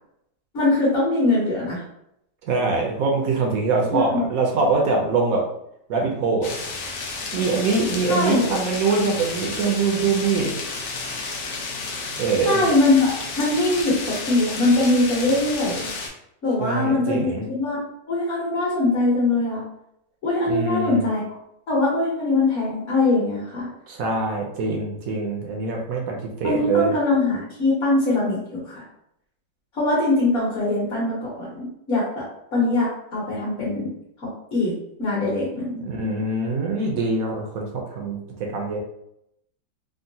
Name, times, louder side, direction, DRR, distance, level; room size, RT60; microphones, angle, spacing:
voice 1, 0.5-1.8 3.9-4.2 8.1-8.5 12.4-15.9 16.4-17.8 18.1-19.6 20.2-21.3 21.7-23.7 26.4-28.8 29.7-32.2 32.5-33.9 34.2-35.8, left 2 dB, 50° left, -6 dB, 1.1 m, -22 dB
voice 2, 2.4-5.4 5.9-6.6 7.3-10.5 12.2-12.6 16.6-17.5 20.5-21.0 23.9-26.9 35.9-38.8, right 3 dB, 70° right, 0 dB, 0.9 m, -23 dB
sound 1, 6.4-16.1, left 3 dB, 70° left, 0.7 m, -32 dB
3.6 x 2.1 x 2.6 m, 0.77 s
omnidirectional pair, 1.9 m